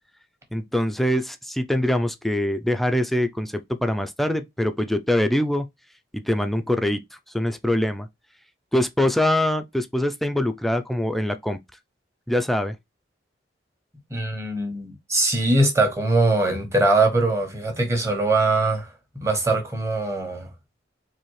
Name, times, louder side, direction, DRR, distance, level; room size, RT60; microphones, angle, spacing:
voice 1, 0.5-5.7 6.1-7.0 7.3-8.1 8.7-11.6 12.3-12.8, left 1 dB, ahead, 0.3 m, -23 dB
voice 2, 14.1-20.5, right 2 dB, 15° right, 1.1 m, -22 dB
4.2 x 2.7 x 3.0 m
head